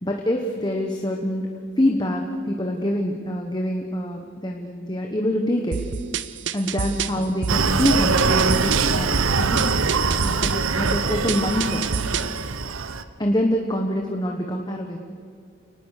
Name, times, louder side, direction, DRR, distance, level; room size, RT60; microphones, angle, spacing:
voice 1, 0.0-1.5 1.8-5.8 6.5-9.7 10.2-11.8 13.2-15.0, left 1 dB, 20° left, 2 dB, 1.3 m, -25 dB
sound 1, 5.7-12.4, right 6 dB, 60° right, 0.7 m, -29 dB
Screaming, 7.5-13.0, right 4 dB, 80° right, 1.0 m, -23 dB
29.5 x 19.0 x 6.6 m, 2.3 s
head